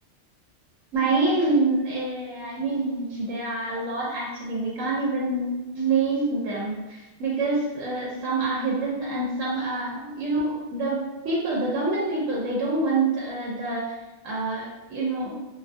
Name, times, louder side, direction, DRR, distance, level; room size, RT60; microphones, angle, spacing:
voice 1, 0.9-11.0 11.2-13.9 14.2-14.6 14.9-15.3, right 3 dB, 85° right, -5 dB, 1.0 m, -26 dB
2.5 x 2.4 x 2.5 m, 1.1 s
omnidirectional pair, 1.3 m